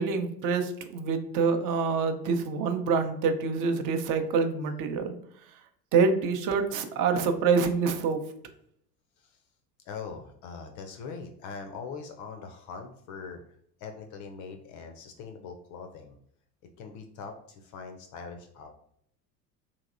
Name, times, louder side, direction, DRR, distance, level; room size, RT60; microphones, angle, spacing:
voice 1, 0.0-5.2 5.9-8.2, right 5 dB, 40° right, 7 dB, 0.6 m, -26 dB
voice 2, 9.9-13.4 13.8-16.2 16.8-18.7, left 5 dB, 40° left, 5 dB, 0.4 m, -42 dB
2.9 x 2.8 x 2.5 m, 0.69 s
hypercardioid pair, 75°, 48 cm